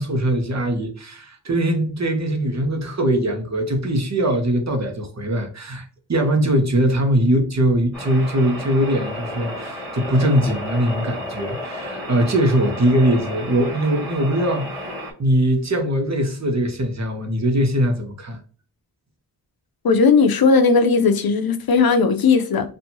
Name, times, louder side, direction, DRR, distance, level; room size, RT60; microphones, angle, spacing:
voice 1, 0.0-18.4, right 1 dB, 40° right, 1.1 m, -21 dB
sound 1, 7.9-15.1, left 1 dB, 5° left, 1.9 m, -32 dB
voice 2, 19.8-22.7, left 4 dB, 60° left, 0.7 m, -17 dB
4.4 x 2.7 x 2.8 m
wide cardioid pair, 105°, 41 cm